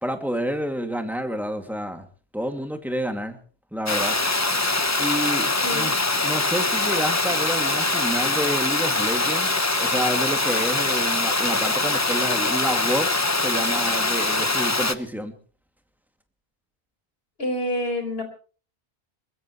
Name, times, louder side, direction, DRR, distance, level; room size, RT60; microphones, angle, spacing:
voice 1, 0.0-2.1 2.3-3.4 3.7-4.2 5.0-5.9 6.2-13.1 13.4-15.3, equal, ahead, 5 dB, 2.2 m, -29 dB
Water, 3.9-14.9, left 2 dB, 15° left, 0.8 m, -23 dB
voice 2, 5.6-6.0 17.4-18.2, left 1 dB, 65° left, 6 dB, 4.9 m, -27 dB
22.5 x 21.0 x 3.1 m, 0.40 s
omnidirectional pair, 1.1 m